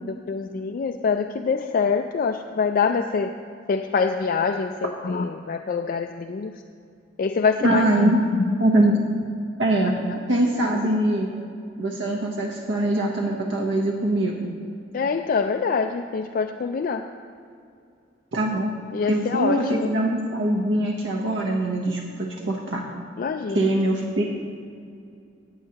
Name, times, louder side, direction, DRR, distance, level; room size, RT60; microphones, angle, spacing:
voice 1, 0.0-3.3 3.7-6.6 7.2-8.6 10.1-10.2 10.6-10.7 14.9-17.0 18.9-19.9 23.2-23.7, left 5 dB, 50° left, 5 dB, 0.3 m, -25 dB
voice 2, 7.6-8.2 8.6-9.0 9.6-10.0 10.3-11.3 11.8-14.3 18.3-18.7 19.1-22.8 23.5-24.2, right 1 dB, 90° right, -1 dB, 0.9 m, -22 dB
14.5 x 8.8 x 2.9 m, 2.5 s
head